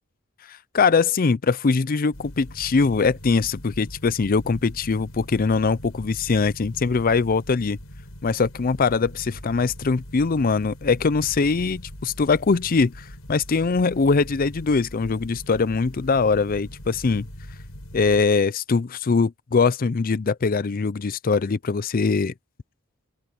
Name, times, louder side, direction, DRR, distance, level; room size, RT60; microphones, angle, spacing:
voice 1, 0.7-7.8 8.2-17.3 17.9-22.3, left 4 dB, 45° left, 0.5 m, -22 dB
sound 1, 2.1-18.2, equal, 85° left, 6.7 m, -41 dB
open air
head